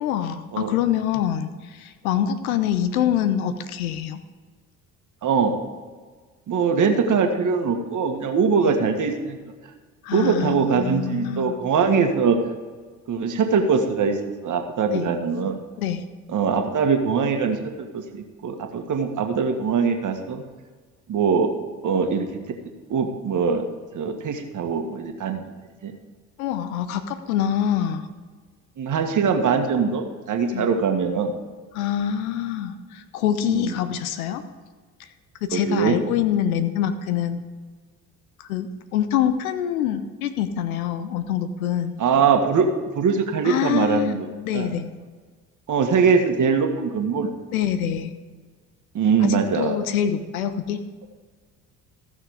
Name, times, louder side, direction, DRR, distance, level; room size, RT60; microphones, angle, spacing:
voice 1, 0.0-4.2 10.0-11.5 14.9-15.1 15.8-16.0 26.4-28.1 30.5-30.7 31.7-34.4 35.4-37.4 38.5-42.0 43.4-44.9 47.5-48.1 49.2-50.8, left 9 dB, 80° left, 10 dB, 0.9 m, -25 dB
voice 2, 5.2-5.5 6.5-9.4 10.1-12.4 13.1-15.6 16.3-20.4 21.1-21.5 21.8-22.3 22.9-23.6 23.9-25.5 25.8-25.9 28.8-31.3 33.4-33.7 35.5-36.0 42.0-42.7 43.0-44.2 44.5-44.7 45.7-47.3 48.9-49.7, right 5 dB, 45° right, 5 dB, 1.7 m, -22 dB
14.5 x 6.3 x 5.0 m, 1.5 s
hypercardioid pair, 55°, 42 cm